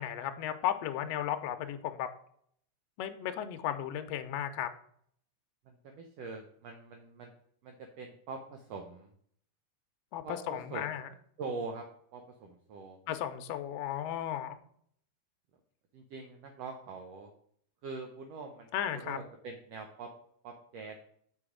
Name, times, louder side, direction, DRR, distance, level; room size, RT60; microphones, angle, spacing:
voice 1, 0.0-2.1 3.0-4.7 10.1-11.1 13.1-14.6 18.7-19.2, left 10 dB, 80° left, 8 dB, 1.5 m, -35 dB
voice 2, 5.7-7.3 7.6-9.1 10.2-10.8 11.4-11.9 12.1-13.0 15.9-17.3 17.8-20.1 20.4-21.0, right 4 dB, 70° right, 4 dB, 1.6 m, -43 dB
6.9 x 4.9 x 4.9 m, 0.65 s
omnidirectional pair, 3.4 m